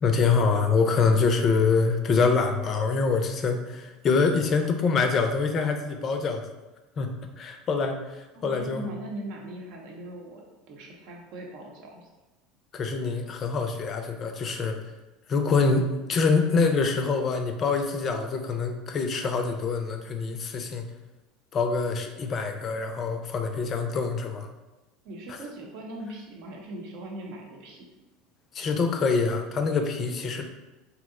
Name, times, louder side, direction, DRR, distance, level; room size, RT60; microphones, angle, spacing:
voice 1, 0.0-6.4 7.0-8.8 12.7-14.8 15.3-20.8 21.5-24.5 28.5-30.4, left 4 dB, 40° left, 6 dB, 0.4 m, -25 dB
voice 2, 8.3-12.1 25.0-27.9, right 1 dB, 60° right, 0 dB, 0.7 m, -40 dB
2.8 x 2.1 x 3.7 m, 1.1 s
hypercardioid pair, 85°, 0 cm